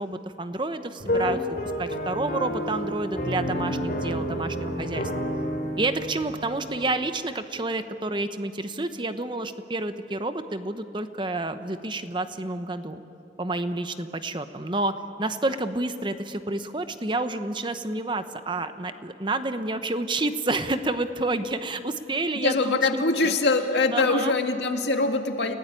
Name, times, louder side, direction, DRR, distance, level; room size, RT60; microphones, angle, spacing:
voice 1, 0.0-5.1 5.8-13.0 13.4-23.3 23.9-24.3, right 2 dB, 25° right, 10 dB, 0.9 m, -29 dB
sound 1, 1.0-6.9, equal, 55° left, 3.2 m, -30 dB
voice 2, 22.4-25.5, left 3 dB, 80° left, 5 dB, 2.0 m, -23 dB
29.5 x 17.0 x 9.8 m, 2.9 s
head